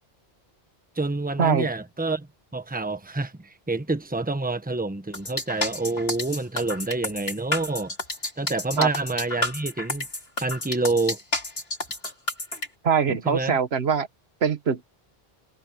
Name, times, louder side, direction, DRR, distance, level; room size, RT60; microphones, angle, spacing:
voice 1, 0.9-7.9 8.4-10.1 10.4-11.2 13.2-13.6, right 2 dB, 10° right, 1.1 m, -28 dB
sound 1, 5.1-12.7, left 2 dB, 70° left, 4.6 m, -30 dB
voice 2, 12.8-14.1 14.4-14.9, right 6 dB, 80° right, 1.4 m, -22 dB
omnidirectional pair, 1.0 m